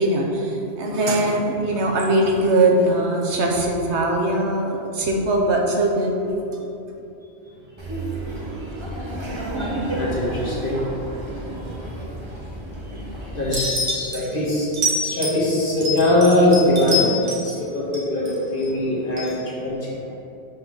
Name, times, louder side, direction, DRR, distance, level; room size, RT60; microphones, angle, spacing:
voice 1, 0.0-6.2, right 1 dB, 75° right, 0 dB, 1.2 m, -21 dB
Laughter, 7.8-13.6, right 1 dB, 25° right, 0.9 m, -31 dB
voice 2, 9.6-10.8 12.0-12.1 13.4-14.7 15.0-17.1 17.4-19.8, left 1 dB, 50° left, -6 dB, 1.7 m, -21 dB
sound 1, 13.5-14.2 14.7-15.4 15.8-17.6 17.9-18.7 19.2-19.3, left 1 dB, 55° right, 1.5 m, -25 dB
5.5 x 4.0 x 6.0 m, 2.8 s
omnidirectional pair, 1.2 m